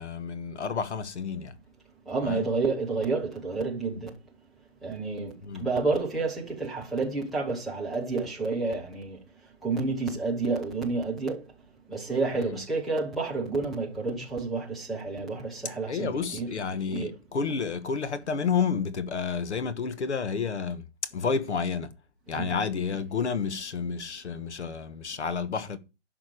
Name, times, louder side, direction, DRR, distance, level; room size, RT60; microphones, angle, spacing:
voice 1, 0.0-1.5 2.2-2.5 5.4-5.7 12.3-12.6 15.9-21.9 22.3-25.8, left 5 dB, 65° left, 1.3 m, -30 dB
voice 2, 2.1-4.1 4.8-9.2 9.6-11.4 11.9-16.5 16.9-17.1 22.3-22.5, right 3 dB, ahead, 0.4 m, -30 dB
11.5 x 5.9 x 4.9 m
hypercardioid pair, 175°, 36 cm